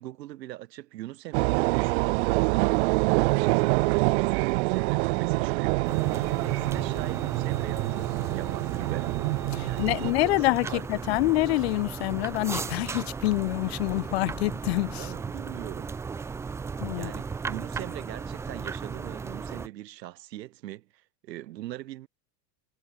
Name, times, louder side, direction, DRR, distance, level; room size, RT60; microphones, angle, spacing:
voice 1, 0.0-5.8 6.3-9.2 9.6-11.2 14.9-16.0 16.9-22.1, right 15 dB, 85° right, 5.8 m, -41 dB
sound 1, 1.3-10.1, right 26 dB, 45° right, 1.3 m, -26 dB
sound 2, 5.8-19.7, right 5 dB, 5° right, 0.7 m, -36 dB
voice 2, 9.5-15.1 16.8-17.1, left 19 dB, 40° left, 0.5 m, -26 dB
supercardioid pair, 180°, 49 cm